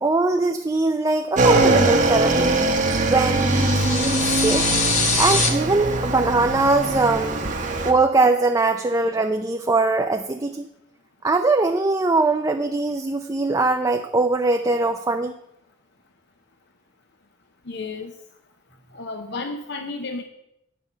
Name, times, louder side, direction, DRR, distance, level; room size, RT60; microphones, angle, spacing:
voice 1, 0.0-2.6 3.1-4.7 5.2-7.4 7.8-10.7 11.2-15.3, right 3 dB, 20° right, 5 dB, 0.4 m, -21 dB
Motorcycle / Engine, 1.4-7.9, right 2 dB, 40° right, 1.0 m, -21 dB
sound 1, 3.4-5.5, left 4 dB, 40° left, 1.3 m, -23 dB
voice 2, 17.7-18.1 18.9-20.2, left 3 dB, 60° left, 6 dB, 0.7 m, -32 dB
9.3 x 5.2 x 7.2 m, 0.80 s
head